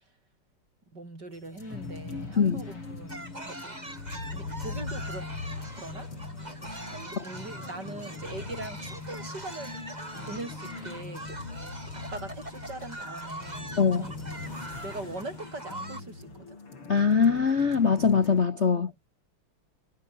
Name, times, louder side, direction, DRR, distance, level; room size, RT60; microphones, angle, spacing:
voice 1, 0.9-3.8 4.3-5.3 5.7-6.1 6.9-9.7 10.3-11.4 11.9-14.1 14.8-16.6 18.7-18.9, right 2 dB, 50° right, 6.7 m, -41 dB
sound 1, 1.3-18.5, left 2 dB, 60° left, 8.1 m, -49 dB
sound 2, 1.7-18.4, left 4 dB, 80° left, 5.8 m, -41 dB
sound 3, 3.1-16.0, right 1 dB, 15° right, 4.3 m, -43 dB
voice 2, 16.9-18.9, left 6 dB, 35° left, 1.3 m, -22 dB
omnidirectional pair, 2.4 m